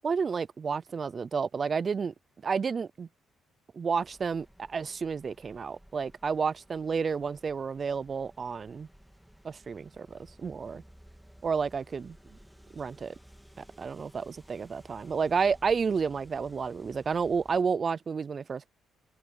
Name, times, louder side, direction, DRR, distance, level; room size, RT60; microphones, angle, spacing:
voice 1, 0.0-2.1 2.4-3.1 3.8-8.9 9.4-10.8 11.4-12.2 12.7-13.1 13.8-18.7, right 5 dB, 40° right, 0.4 m, -31 dB
sound 1, 4.0-17.6, equal, 5° right, 2.0 m, -56 dB
cardioid pair, 90°, 0 cm